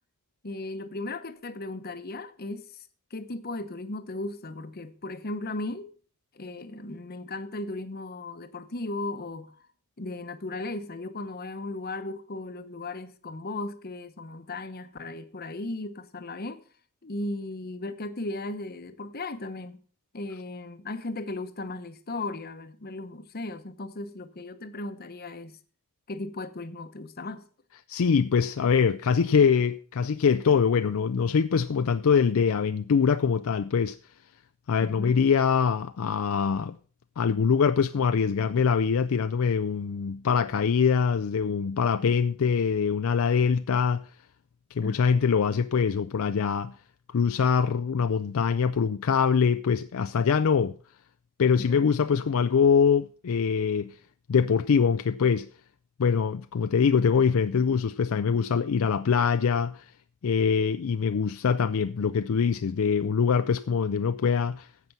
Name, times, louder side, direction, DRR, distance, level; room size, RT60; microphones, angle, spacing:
voice 1, 0.4-5.9 6.3-9.6 10.0-16.6 17.0-19.8 20.1-25.6 26.1-27.4 34.8-35.2 44.8-45.0 51.6-51.9, left 2 dB, 45° left, 0.9 m, -36 dB
voice 2, 27.9-34.0 34.7-36.8 37.2-44.0 44.7-46.8 47.1-50.8 51.4-53.9 54.3-55.5 56.0-59.8 60.2-64.7, left 6 dB, 65° left, 0.4 m, -23 dB
15.5 x 6.0 x 5.4 m
head